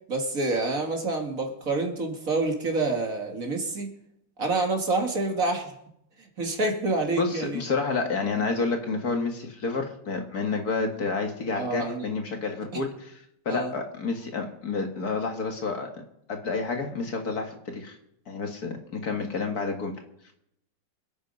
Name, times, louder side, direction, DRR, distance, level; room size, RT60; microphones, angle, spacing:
voice 1, 0.1-3.9 4.4-5.7 6.4-7.6 11.5-12.1 13.5-13.7, right 2 dB, 50° right, 3 dB, 2.2 m, -27 dB
voice 2, 7.2-16.0 16.3-18.0 18.3-19.9, left 4 dB, 55° left, 4 dB, 2.2 m, -29 dB
25.5 x 8.5 x 5.4 m, 0.76 s
omnidirectional pair, 2.0 m